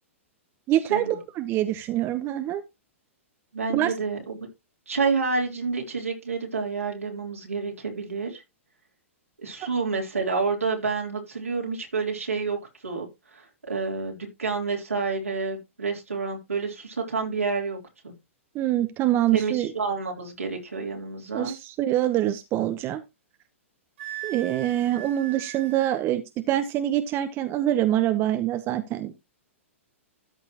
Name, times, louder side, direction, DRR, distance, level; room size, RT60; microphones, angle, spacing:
voice 1, 0.7-2.6 3.7-3.9 18.5-19.7 21.3-23.0 24.2-29.1, right 13 dB, 30° right, 9 dB, 0.9 m, -25 dB
voice 2, 3.5-4.4 4.9-8.4 9.4-12.6 12.8-17.8 18.0-18.1 19.3-21.6, right 4 dB, 85° right, 0 dB, 3.5 m, -29 dB
Wind instrument woodwind instrument, 24.0-26.0, right 10 dB, 60° right, 3.0 m, -39 dB
13.5 x 5.9 x 3.0 m, 0.23 s
figure-of-eight pair, 110°, 7 cm